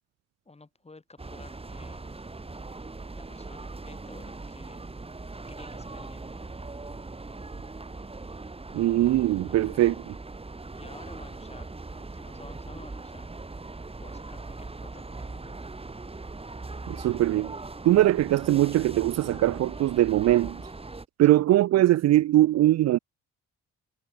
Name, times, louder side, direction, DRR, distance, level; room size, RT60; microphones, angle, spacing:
voice 1, 0.4-2.1 3.2-4.9 5.5-6.3 9.4-10.0 10.7-13.3 14.0-15.7 21.3-21.4, left 3 dB, 20° left, 6.9 m, -51 dB
sound 1, 1.2-21.1, right 3 dB, 20° right, 3.6 m, -40 dB
voice 2, 8.7-9.9 16.9-17.5 17.8-20.6 21.2-23.0, right 14 dB, 60° right, 0.5 m, -21 dB
cardioid pair, 90°, 30 cm